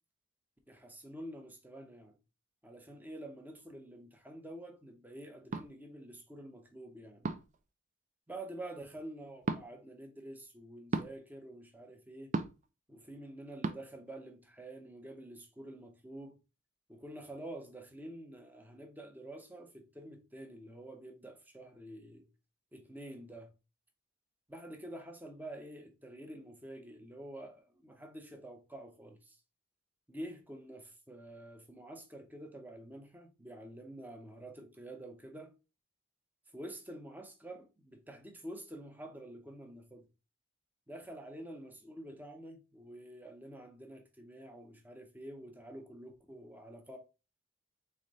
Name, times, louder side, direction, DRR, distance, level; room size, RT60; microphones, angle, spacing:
voice 1, 0.7-2.2 2.6-7.3 8.3-12.3 12.9-16.4 16.9-22.3 22.7-23.5 24.5-29.4 30.1-35.5 36.5-40.1 40.9-47.0, right 1 dB, 10° right, 0.7 m, -48 dB
sound 1, 5.5-5.7 7.2-7.6 9.4-9.6 10.9-11.1 12.3-12.7 13.6-13.8, right 3 dB, 35° right, 0.4 m, -34 dB
3.7 x 3.3 x 4.0 m
head